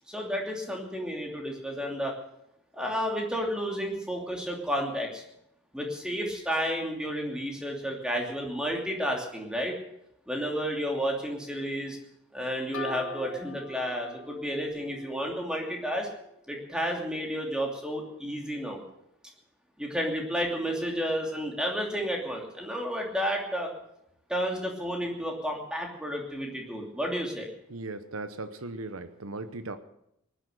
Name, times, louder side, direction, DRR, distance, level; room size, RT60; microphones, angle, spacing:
voice 1, 0.1-2.1 2.7-5.2 5.7-9.8 10.3-12.0 12.3-16.1 16.5-18.8 19.8-23.7 24.3-27.5, equal, 5° right, 0 dB, 2.8 m, -31 dB
sound 1, 12.7-16.3, left 5 dB, 75° left, 2.4 m, -43 dB
voice 2, 27.7-29.8, right 3 dB, 85° right, 10 dB, 0.9 m, -37 dB
19.0 x 10.0 x 6.6 m, 0.77 s
head